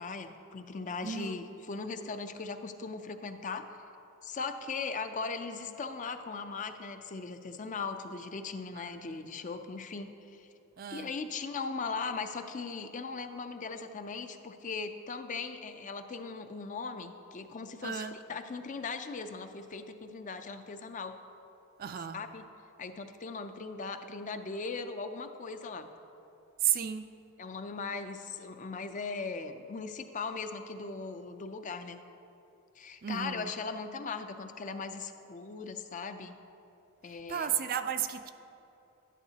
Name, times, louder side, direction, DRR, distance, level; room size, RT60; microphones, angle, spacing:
voice 1, 0.0-3.7 4.2-10.5 10.9-21.2 22.1-22.5 22.8-25.9 27.4-32.0 32.8-36.4 37.0-37.5, left 4 dB, 35° left, 8 dB, 0.4 m, -39 dB
voice 2, 1.0-1.4 8.8-9.2 10.8-11.1 17.8-18.1 21.8-22.2 26.6-27.1 33.0-33.5 37.3-38.3, right 9 dB, 40° right, 10 dB, 0.3 m, -33 dB
11.5 x 11.0 x 2.8 m, 2.8 s
head